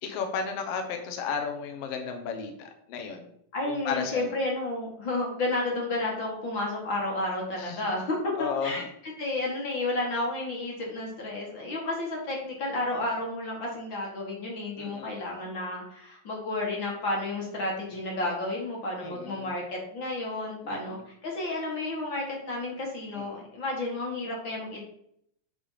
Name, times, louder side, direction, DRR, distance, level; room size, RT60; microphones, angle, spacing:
voice 1, 0.0-3.3 3.7-4.3 7.6-7.8 8.4-8.9 14.8-15.1 19.0-19.5 20.6-21.0 23.1-23.4, left 6 dB, 75° left, 4 dB, 1.4 m, -34 dB
voice 2, 3.5-24.8, left 2 dB, 45° left, -2 dB, 1.7 m, -31 dB
8.6 x 3.5 x 5.7 m, 0.71 s
omnidirectional pair, 4.1 m